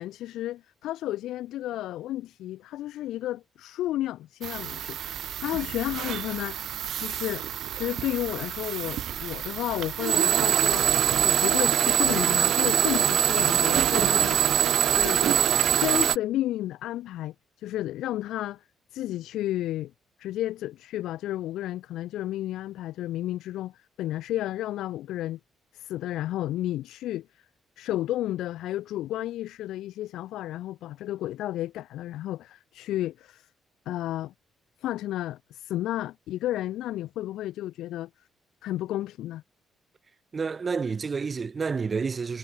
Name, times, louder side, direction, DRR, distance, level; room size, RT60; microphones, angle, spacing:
voice 1, 0.0-6.6 6.9-10.9 11.2-14.4 14.9-15.2 15.8-18.6 18.9-19.9 20.2-25.4 25.7-27.4 27.8-33.5 33.8-34.3 34.8-38.1 38.6-39.4, left 14 dB, 85° left, 1.3 m, -32 dB
sound 1, 4.4-16.2, right 10 dB, 70° right, 0.3 m, -24 dB
voice 2, 40.3-42.4, right 5 dB, 35° right, 2.0 m, -29 dB
cardioid pair, 90°, 0 cm